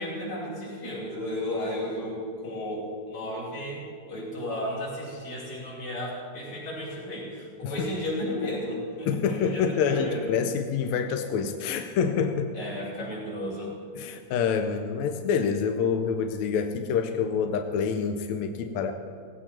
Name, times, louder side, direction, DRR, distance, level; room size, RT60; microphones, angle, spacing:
voice 1, 0.0-10.4 12.5-13.8, left 1 dB, 55° left, -7 dB, 6.2 m, -33 dB
voice 2, 9.1-12.5 14.0-18.9, left 6 dB, 75° left, 6 dB, 1.8 m, -27 dB
17.5 x 17.0 x 4.4 m, 2.3 s
omnidirectional pair, 3.9 m